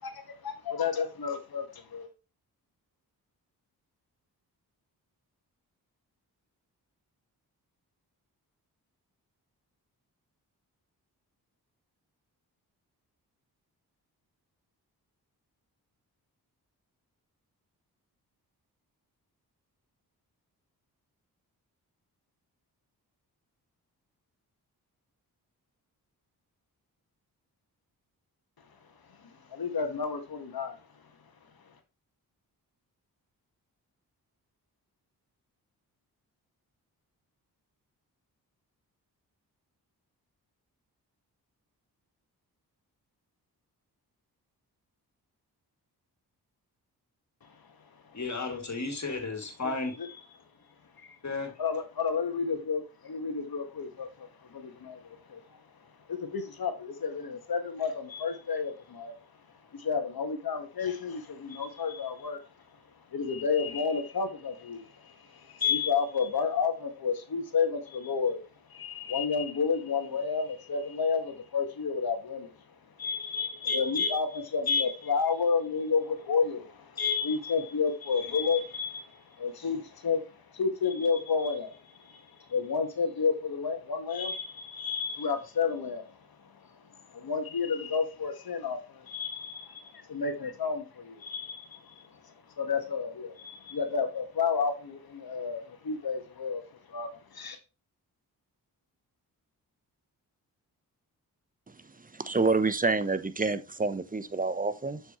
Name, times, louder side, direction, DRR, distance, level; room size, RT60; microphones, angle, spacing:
voice 1, 0.0-2.1 29.2-30.8 47.5-47.6 50.0-50.1 51.0-51.2 51.6-55.6 56.1-59.1 59.7-62.4 63.1-68.4 68.7-72.5 73.0-97.6, left 5 dB, 60° left, 1.8 m, -31 dB
voice 2, 48.1-49.9 51.2-51.5, left 3 dB, 45° left, 2.9 m, -33 dB
voice 3, 101.7-105.0, right 3 dB, 20° right, 1.0 m, -28 dB
7.1 x 6.5 x 3.1 m
cardioid pair, 50°, 40 cm